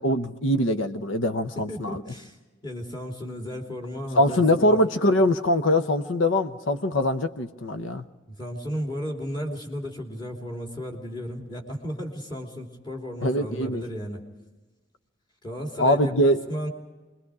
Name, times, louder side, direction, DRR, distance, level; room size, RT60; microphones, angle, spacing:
voice 1, 0.0-2.0 4.2-8.0 13.2-13.8 15.8-16.4, left 1 dB, 80° left, 9 dB, 1.0 m, -23 dB
voice 2, 1.5-2.4 2.6-4.8 8.3-14.2 15.4-16.7, equal, 25° left, 1 dB, 3.3 m, -34 dB
26.5 x 22.0 x 4.9 m, 1.2 s
head